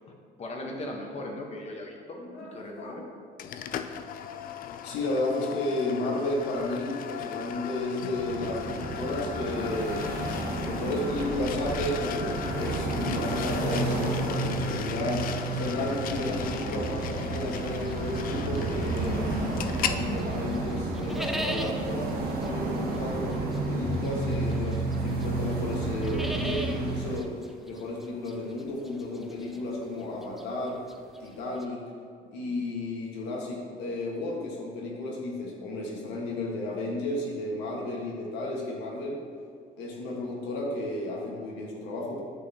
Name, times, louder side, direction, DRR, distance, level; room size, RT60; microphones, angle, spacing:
voice 1, 0.4-2.0 2.4-3.0 10.7-10.8, left 1 dB, 40° left, 1 dB, 1.2 m, -38 dB
voice 2, 2.2-3.0 4.8-10.1 10.6-15.3 15.6-22.1 22.4-27.3 27.7-30.8 31.2-31.8 32.2-39.2 39.8-42.2, left 2 dB, 90° left, -2 dB, 1.6 m, -33 dB
sound 1, 3.4-20.0, left 9 dB, 55° left, 0.4 m, -37 dB
sound 2, 8.1-27.2, right 2 dB, 65° right, 1.2 m, -31 dB
sound 3, 17.9-19.9 20.2-31.6, equal, ahead, 0.5 m, -40 dB
8.7 x 6.7 x 2.9 m, 2.1 s
cardioid pair, 110°, 17 cm